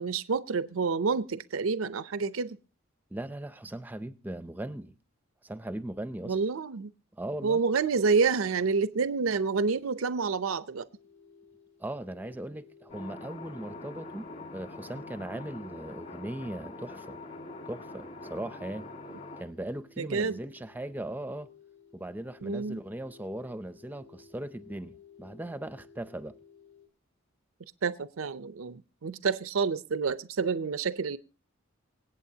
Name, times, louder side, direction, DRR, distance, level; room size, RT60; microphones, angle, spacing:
voice 1, 0.0-2.6 6.2-6.9 7.4-10.9 20.0-20.4 22.4-22.8 27.8-31.2, right 5 dB, 85° right, 0.6 m, -28 dB
voice 2, 3.1-5.0 5.4-6.4 7.1-7.6 11.8-17.2 17.7-18.9 19.4-21.5 21.9-26.3, right 1 dB, 10° right, 0.5 m, -39 dB
sound 1, 9.6-26.9, left 5 dB, 85° left, 2.7 m, -57 dB
sound 2, 12.9-19.4, left 2 dB, 40° left, 1.9 m, -44 dB
25.5 x 8.6 x 2.8 m
head